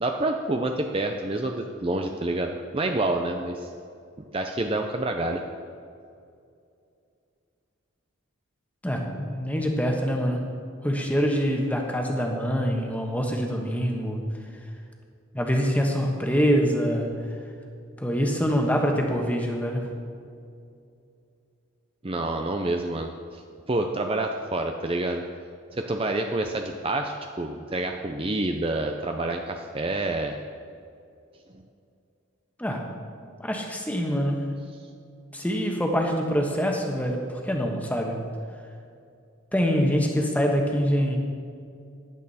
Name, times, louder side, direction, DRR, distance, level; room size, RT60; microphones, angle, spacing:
voice 1, 0.0-3.7 4.3-5.4 22.0-23.4 23.7-25.2 25.7-30.4, right 2 dB, 25° right, 4 dB, 0.5 m, -28 dB
voice 2, 8.8-10.4 10.8-14.3 15.3-17.3 18.0-19.9 32.6-32.9 33.4-34.5 35.3-38.2 39.5-41.2, equal, 5° left, 1 dB, 1.3 m, -25 dB
15.0 x 11.0 x 4.2 m, 2.4 s
head